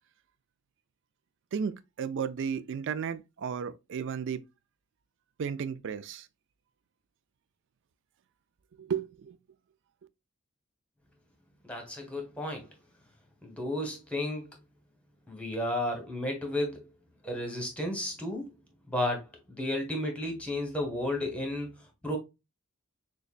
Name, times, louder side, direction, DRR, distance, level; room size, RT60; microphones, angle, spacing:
voice 1, 1.5-4.4 5.4-6.3 8.8-9.4, right 7 dB, 60° right, 0.4 m, -34 dB
voice 2, 11.6-12.7 13.4-14.5 15.3-16.9 17.2-18.5 18.9-22.2, left 1 dB, 5° left, 1.1 m, -33 dB
6.4 x 2.2 x 2.4 m
head